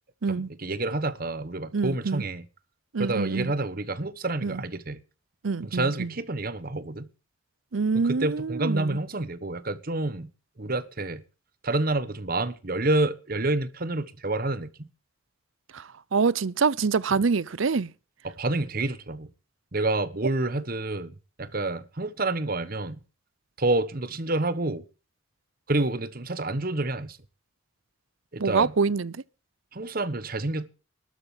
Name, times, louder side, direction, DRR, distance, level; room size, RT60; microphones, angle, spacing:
voice 1, 0.3-2.4 3.0-5.0 5.6-7.1 7.9-10.3 10.6-11.2 11.6-14.9 17.1-17.2 18.2-19.3 19.7-23.0 23.6-24.8 25.7-27.2 28.3-28.7 29.7-30.7, right 2 dB, 45° right, 1.2 m, -28 dB
voice 2, 1.7-2.2 2.9-3.5 4.4-4.6 5.4-6.1 7.7-9.0 15.7-15.8 16.1-17.9 28.4-29.2, right 4 dB, 75° right, 0.6 m, -25 dB
13.0 x 7.8 x 9.1 m
head